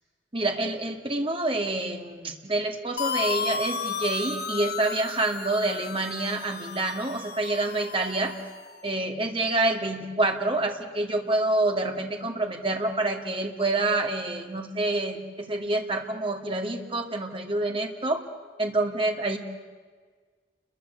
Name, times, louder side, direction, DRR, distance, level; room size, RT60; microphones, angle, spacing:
voice 1, 0.3-8.3 8.8-18.2 18.6-19.4, right 2 dB, 30° right, 3 dB, 2.3 m, -27 dB
sound 1, 3.0-8.7, left 6 dB, 55° left, 1.5 m, -34 dB
29.5 x 22.5 x 8.1 m, 1.5 s
head